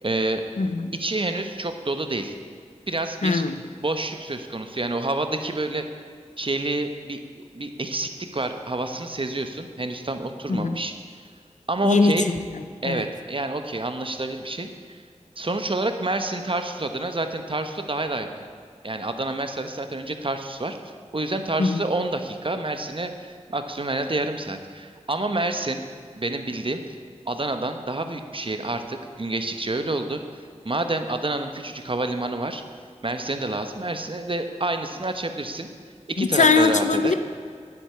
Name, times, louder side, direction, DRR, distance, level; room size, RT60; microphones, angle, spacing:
voice 1, 0.0-0.4 0.9-2.4 2.9-3.4 3.8-5.9 6.4-10.9 11.7-12.3 12.8-15.0 15.4-18.3 18.8-20.8 21.1-25.8 26.2-26.8 27.3-32.6 33.0-35.7 36.1-37.1, right 2 dB, 45° right, 7 dB, 1.1 m, -28 dB
voice 2, 0.6-0.9 3.2-3.6 10.5-10.8 11.8-13.0 21.6-21.8 36.2-37.1, left 4 dB, 85° left, 9 dB, 0.7 m, -21 dB
9.9 x 8.4 x 8.6 m, 2.2 s
wide cardioid pair, 60°, 12 cm